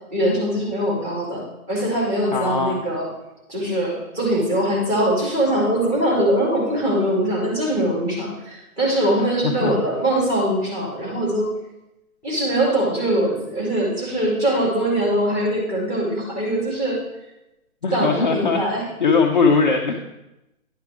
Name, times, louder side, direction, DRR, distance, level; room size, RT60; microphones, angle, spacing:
voice 1, 0.1-1.4 1.7-3.1 3.5-11.5 12.2-17.0 17.9-18.8, right 1 dB, 15° right, -5 dB, 2.1 m, -22 dB
voice 2, 2.3-2.8 9.2-9.8 17.8-18.6 19.0-20.0, left 4 dB, 35° left, 0 dB, 0.5 m, -20 dB
10.5 x 4.7 x 3.6 m, 0.92 s
hypercardioid pair, 145°, 43 cm